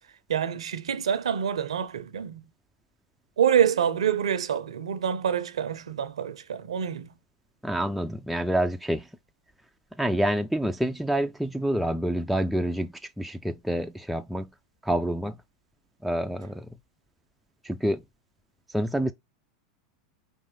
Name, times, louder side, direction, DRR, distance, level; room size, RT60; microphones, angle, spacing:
voice 1, 0.3-2.4 3.4-7.1, right 8 dB, 85° right, 0.6 m, -26 dB
voice 2, 7.6-9.1 10.0-14.5 14.8-15.4 16.0-16.7 17.6-18.0 18.7-19.1, right 1 dB, ahead, 0.4 m, -27 dB
5.2 x 2.6 x 3.8 m
hypercardioid pair, 100°, 3 cm